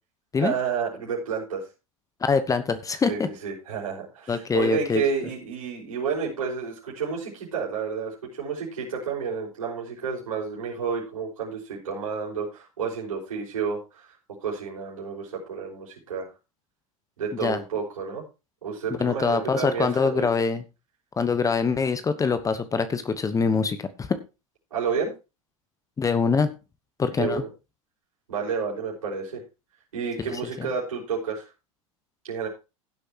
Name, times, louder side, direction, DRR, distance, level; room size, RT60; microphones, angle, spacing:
voice 1, 0.4-1.6 3.1-14.1 14.4-16.3 17.2-18.2 18.6-20.3 24.7-25.1 27.2-27.5 28.3-29.4 29.9-31.5 32.2-32.5, right 6 dB, 80° right, -5 dB, 5.2 m, -30 dB
voice 2, 2.2-3.3 4.3-5.0 17.4-17.6 19.0-20.6 21.2-24.1 26.0-26.5 27.0-27.4, left 5 dB, 20° left, 11 dB, 1.1 m, -24 dB
16.5 x 8.2 x 3.0 m, 0.28 s
hypercardioid pair, 90°, 18 cm